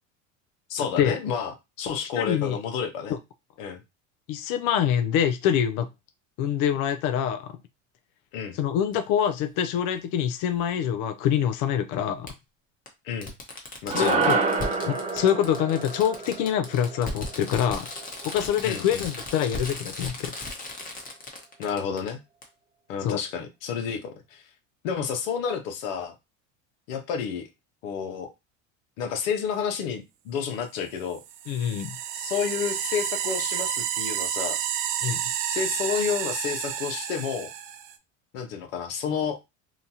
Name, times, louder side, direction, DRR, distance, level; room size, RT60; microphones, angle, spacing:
voice 1, 0.7-3.2 3.6-3.8 8.3-8.6 13.0-13.3 13.8-14.3 18.6-19.1 21.6-22.2 22.9-24.4 24.8-26.2 26.9-27.4 27.8-28.3 29.0-31.2 32.1-34.6 35.5-37.5 38.3-39.4, left 7 dB, 85° left, 0.8 m, -30 dB
voice 2, 2.2-2.6 3.1-3.2 4.3-5.9 6.4-7.5 8.5-12.3 13.9-14.3 14.8-17.9 18.2-20.3 23.0-23.2 31.5-31.9 35.0-35.2, left 9 dB, 55° left, 0.5 m, -25 dB
Fireworks, 8.9-9.0 10.6-10.7 12.3-12.4 12.9-13.0 13.2-22.1 22.4-22.5, left 2 dB, 20° left, 0.8 m, -37 dB
sound 1, 13.9-18.4, right 4 dB, 20° right, 0.6 m, -28 dB
sound 2, 31.1-37.9, right 10 dB, 65° right, 0.6 m, -30 dB
2.8 x 2.2 x 2.7 m
supercardioid pair, 90°, 39 cm